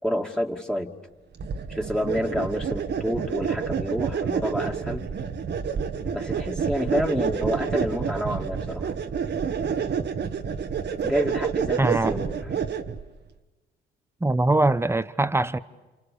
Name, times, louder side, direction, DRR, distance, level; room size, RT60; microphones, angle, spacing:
voice 1, 0.0-0.9 1.7-5.1 6.1-8.9 11.0-12.5, equal, 5° left, 2.6 m, -28 dB
sound 1, 1.4-13.1, right 6 dB, 55° right, 1.5 m, -28 dB
voice 2, 11.8-12.2 14.2-15.6, right 2 dB, 10° right, 1.1 m, -22 dB
29.5 x 28.0 x 7.0 m
supercardioid pair, 55°, 21 cm